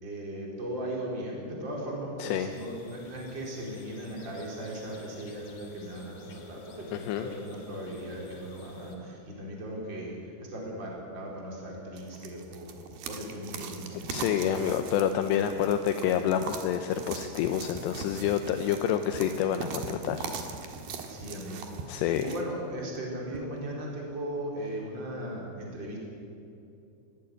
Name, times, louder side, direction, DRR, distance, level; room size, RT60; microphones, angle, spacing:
voice 1, 0.0-10.1 10.4-12.7 13.1-14.7 21.1-26.0, right 1 dB, 25° right, -2 dB, 4.6 m, -38 dB
voice 2, 2.2-2.5 6.9-7.3 14.1-20.3 21.9-22.3, left 9 dB, 80° left, 7 dB, 2.7 m, -28 dB
sound 1, 2.5-9.0, left 3 dB, 50° left, 3.8 m, -53 dB
sound 2, 12.0-22.4, right 5 dB, 60° right, 2.9 m, -40 dB
sound 3, 17.6-23.9, right 5 dB, 85° right, 2.1 m, -49 dB
19.0 x 16.0 x 9.8 m, 2.6 s
omnidirectional pair, 5.6 m